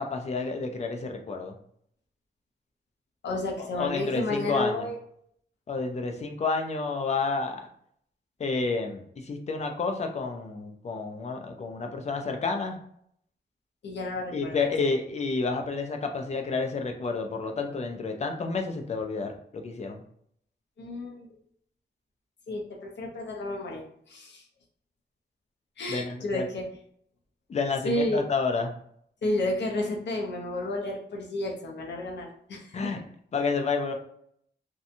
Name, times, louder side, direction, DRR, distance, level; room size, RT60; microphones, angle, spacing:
voice 1, 0.0-1.5 3.6-4.9 5.7-7.6 8.4-12.8 14.3-20.0 25.9-26.5 27.5-28.7 32.7-33.0 33.3-33.9, left 4 dB, 40° left, 4 dB, 0.4 m, -30 dB
voice 2, 3.2-5.0 13.8-14.6 20.8-21.4 22.5-24.4 25.8-26.6 27.8-28.3 29.2-32.9, left 1 dB, 85° left, 0 dB, 0.6 m, -31 dB
2.8 x 2.2 x 2.5 m, 0.66 s
wide cardioid pair, 145°, 18 cm